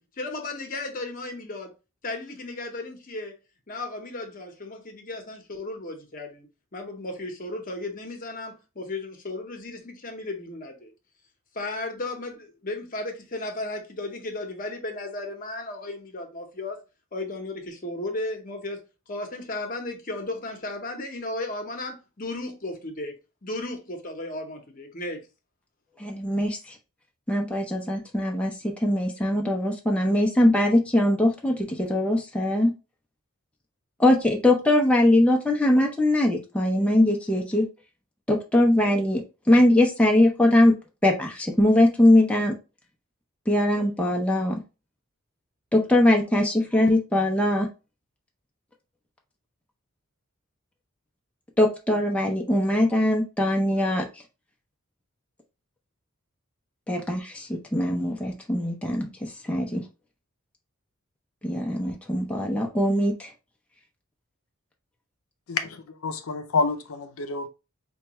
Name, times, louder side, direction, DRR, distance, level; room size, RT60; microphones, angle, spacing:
voice 1, 0.0-1.7 2.0-3.3 3.7-10.9 11.5-16.8 17.1-18.8 19.1-23.1 23.4-25.2, left 2 dB, 40° left, 0.8 m, -35 dB
voice 2, 26.0-26.6 27.3-32.7 34.0-37.7 38.3-40.8 41.0-42.6 43.5-44.6 45.7-47.7 51.6-54.1 56.9-59.8 61.4-63.3, left 1 dB, 5° left, 0.5 m, -21 dB
voice 3, 65.5-67.5, left 4 dB, 75° left, 0.5 m, -28 dB
4.4 x 2.3 x 2.9 m
head